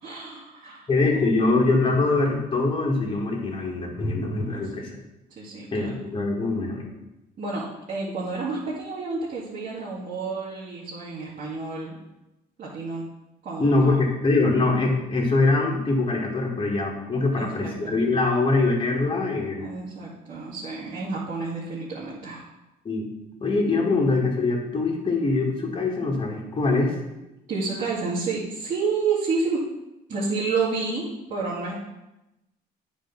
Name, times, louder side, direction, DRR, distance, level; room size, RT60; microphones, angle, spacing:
voice 1, 0.0-1.4 4.5-4.7 5.4-5.9 7.4-12.0 12.6-13.0 13.4-14.0 17.4-18.0 19.6-22.5 27.5-29.6 30.1-31.7, right 4 dB, 50° right, -7 dB, 2.3 m, -30 dB
voice 2, 0.9-4.9 5.7-6.8 13.6-19.6 22.8-23.1 23.4-26.9, left 3 dB, 30° left, -1 dB, 2.3 m, -23 dB
9.1 x 4.9 x 6.0 m, 0.96 s
cardioid pair, 110°, 17 cm